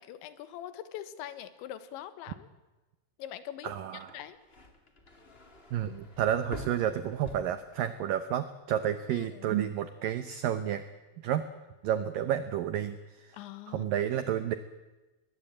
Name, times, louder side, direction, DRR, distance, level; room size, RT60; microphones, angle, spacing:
voice 1, 0.0-2.5 3.2-3.7 4.1-4.4 9.1-9.6 13.3-13.9, left 11 dB, 80° left, 13 dB, 3.5 m, -43 dB
voice 2, 3.6-4.1 5.7-10.8 11.2-11.5 11.8-13.4 13.7-14.5, right 10 dB, 90° right, 11 dB, 1.9 m, -31 dB
sound 1, 4.0-8.2 8.6-9.1, left 2 dB, 30° left, 1.1 m, -47 dB
22.0 x 20.0 x 8.8 m, 1.1 s
omnidirectional pair, 5.2 m